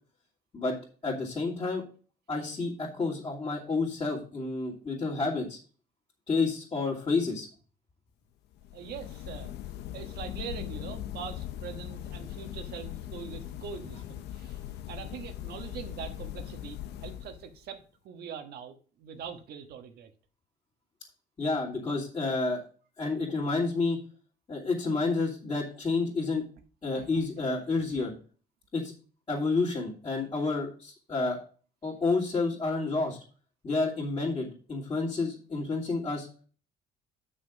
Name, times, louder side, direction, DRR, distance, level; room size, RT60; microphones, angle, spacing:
voice 1, 1.0-1.8 2.3-5.6 6.3-7.5 21.4-22.6 23.0-24.0 24.5-26.4 26.8-28.1 28.7-28.9 29.3-31.4 31.8-33.2 33.6-36.3, left 3 dB, 30° left, -8 dB, 2.9 m, -29 dB
sound 1, 8.5-17.7, left 12 dB, 80° left, 0.8 m, -40 dB
voice 2, 8.7-9.5 9.9-14.6 14.9-20.1 26.9-27.1 27.9-28.1, right 7 dB, 70° right, 6 dB, 1.4 m, -43 dB
7.7 x 6.4 x 5.2 m, 0.39 s
cardioid pair, 110°, 17 cm